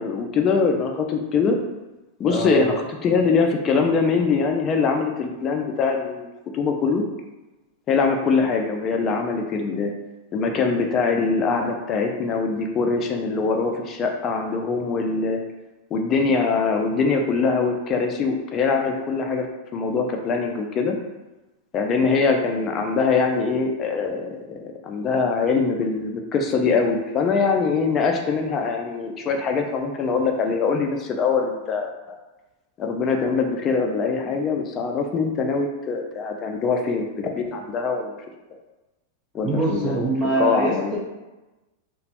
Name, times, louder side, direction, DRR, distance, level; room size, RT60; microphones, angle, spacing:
voice 1, 0.0-1.6 2.2-7.0 7.9-9.9 10.3-15.4 15.9-19.5 19.7-21.0 21.7-32.2 32.8-38.2 38.5-38.6 39.3-41.0, left 4 dB, 30° left, 3 dB, 0.3 m, -23 dB
voice 2, 2.3-2.7 39.4-41.0, right 2 dB, 25° right, -6 dB, 0.6 m, -23 dB
3.0 x 2.0 x 2.8 m, 1.1 s
supercardioid pair, 135°, 0 cm